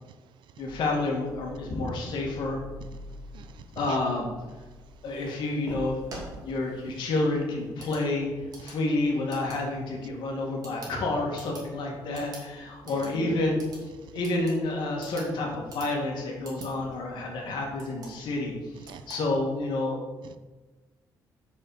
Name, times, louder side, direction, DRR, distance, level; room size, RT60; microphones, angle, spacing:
voice 1, 0.6-2.6 3.8-4.3 5.0-8.3 8.6-13.6 14.1-18.5 19.1-20.0, left 2 dB, 90° left, 0 dB, 2.1 m, -29 dB
sound 1, 0.6-19.8, right 1 dB, 55° right, 2.7 m, -48 dB
voice 2, 3.3-4.0 12.1-12.2 12.8-13.1 14.1-14.2 16.6-16.7 18.9-19.1 20.2-20.4, right 9 dB, 80° right, 11 dB, 0.5 m, -44 dB
6.5 x 5.5 x 6.7 m, 1.2 s
cardioid pair, 130°, 8 cm